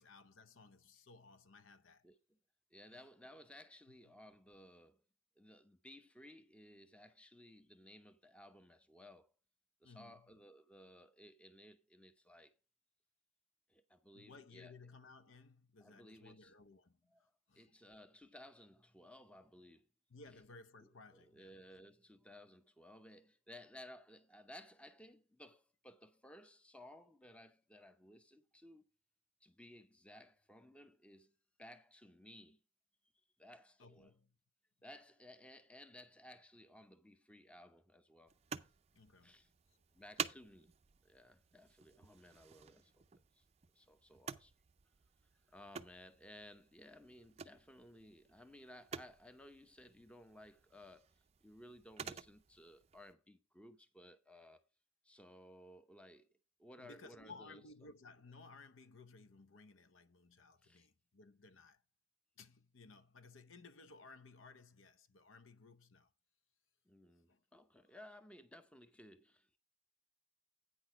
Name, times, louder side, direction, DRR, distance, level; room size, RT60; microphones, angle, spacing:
voice 1, 0.0-2.1 2.9-3.0 3.9-4.2 9.8-10.4 14.1-17.1 17.5-17.7 20.1-21.5 33.8-34.4 38.9-39.4 56.8-61.8 62.4-66.1 67.3-67.4, left 3 dB, 75° left, 0.8 m, -59 dB
voice 2, 2.7-5.0 5.4-9.3 9.8-12.5 13.7-14.7 15.8-16.5 17.1-17.3 17.6-19.9 21.1-28.9 29.4-31.3 31.6-32.6 33.4-34.1 34.8-38.4 39.2-39.5 39.9-40.7 41.0-42.9 43.3-43.4 43.7-44.5 45.5-51.1 51.4-54.6 55.0-56.3 56.6-57.6 60.6-60.9 66.9-69.6, left 1 dB, 5° left, 0.7 m, -58 dB
sound 1, 38.3-53.1, right 6 dB, 30° right, 0.4 m, -51 dB
9.0 x 6.3 x 4.7 m
head